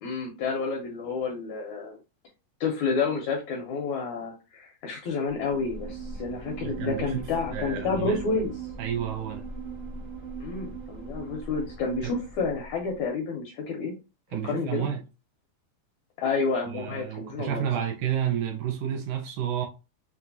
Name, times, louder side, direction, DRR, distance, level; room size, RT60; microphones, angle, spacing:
voice 1, 0.0-2.0 2.6-8.5 10.4-13.9 14.4-14.9 16.2-17.6, left 4 dB, 75° left, 1.7 m, -30 dB
sound 1, 5.3-13.1, right 4 dB, 40° right, 0.8 m, -39 dB
voice 2, 6.6-7.2 7.5-8.2 8.8-9.4 12.0-12.1 14.3-15.0 16.7-19.7, right 9 dB, 75° right, 2.0 m, -30 dB
6.0 x 2.4 x 2.7 m
omnidirectional pair, 4.0 m